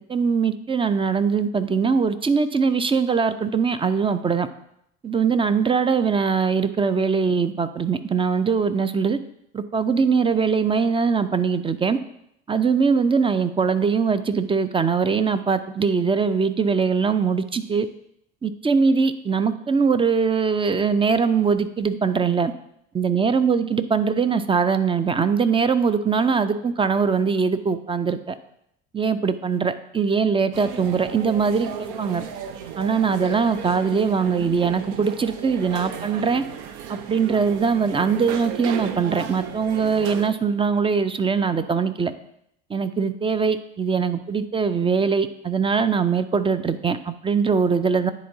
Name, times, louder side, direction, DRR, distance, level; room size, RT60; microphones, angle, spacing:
voice 1, 0.1-4.5 5.0-9.2 9.5-12.0 12.5-17.9 18.4-22.5 22.9-28.3 28.9-31.7 32.0-32.2 32.8-36.4 36.9-42.1 42.7-48.1, right 5 dB, 15° right, 11 dB, 0.4 m, -21 dB
sound 1, 30.5-40.3, right 8 dB, 65° right, 0.6 m, -34 dB
10.0 x 4.0 x 2.7 m, 0.74 s
hypercardioid pair, 60°, 35 cm